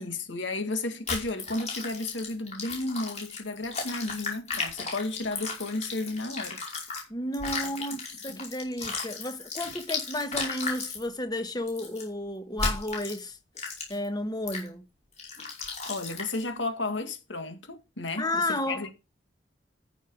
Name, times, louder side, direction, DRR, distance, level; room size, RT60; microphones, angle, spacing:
voice 1, 0.0-6.6 8.3-8.4 15.9-18.9, left 2 dB, 90° left, 2.0 m, -33 dB
sound 1, 1.1-7.0 7.3-11.0 11.7-12.0 12.6-13.2 13.6-14.1 14.5-14.7 15.2-16.4, left 4 dB, 35° left, 5.2 m, -35 dB
voice 2, 7.1-13.4 13.9-14.8 18.2-18.9, left 1 dB, 20° left, 1.3 m, -32 dB
14.0 x 6.4 x 4.8 m
head